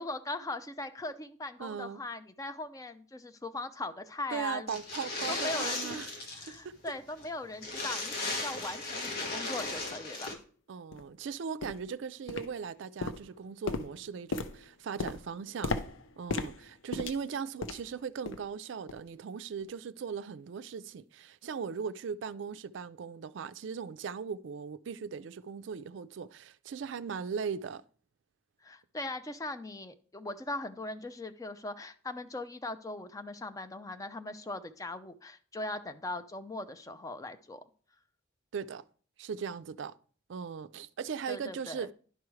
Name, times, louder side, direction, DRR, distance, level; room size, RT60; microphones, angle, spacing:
voice 1, 0.0-4.8 5.3-6.0 6.3-10.4 28.6-37.6 41.3-41.9, left 2 dB, 15° left, 0.4 m, -40 dB
voice 2, 1.6-2.0 4.3-6.1 6.5-6.7 10.7-15.7 16.2-27.8 38.5-38.8 39.2-39.9 40.3-41.9, right 6 dB, 65° right, 0.4 m, -38 dB
sound 1, 4.7-6.6 6.9-7.0 7.2-7.3 7.6-10.3, left 2 dB, 50° left, 1.3 m, -36 dB
sound 2, 9.6-9.7 10.3-10.4 10.9-11.1 11.6-11.9 12.3-12.7 13.0-18.0 18.3-18.5 18.9-19.1 19.6-19.7, left 3 dB, 75° left, 0.6 m, -37 dB
11.0 x 4.8 x 3.1 m
head